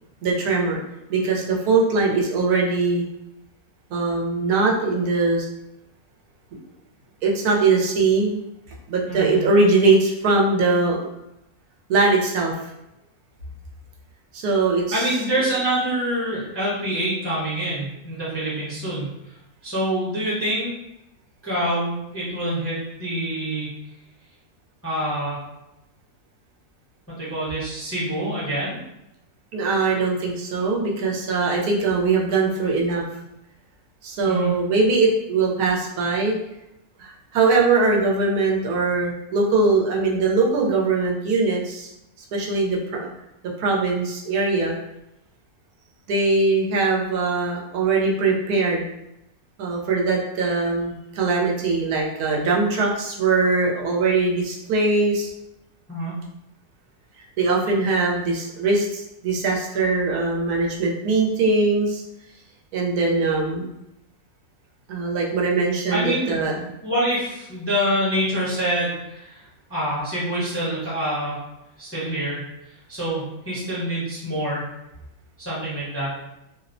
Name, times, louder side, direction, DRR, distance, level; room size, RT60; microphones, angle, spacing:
voice 1, 0.2-0.8 1.1-3.0 3.9-5.5 7.2-8.4 8.9-11.0 11.9-12.6 14.3-15.0 29.5-33.0 34.0-36.3 37.0-41.9 42.3-43.1 43.6-44.7 46.1-48.8 49.6-55.3 57.4-62.0 62.7-63.7 64.9-66.7, right 3 dB, 85° right, -2 dB, 1.1 m, -21 dB
voice 2, 9.0-9.4 14.9-19.3 19.6-20.7 21.4-23.8 24.8-25.4 27.1-28.8 34.2-34.5 55.9-56.2 65.9-66.4 66.8-71.4 71.8-72.4 72.9-74.7 75.4-76.1, right 1 dB, 15° left, -8 dB, 0.5 m, -26 dB
2.8 x 2.0 x 2.5 m, 0.87 s
omnidirectional pair, 1.6 m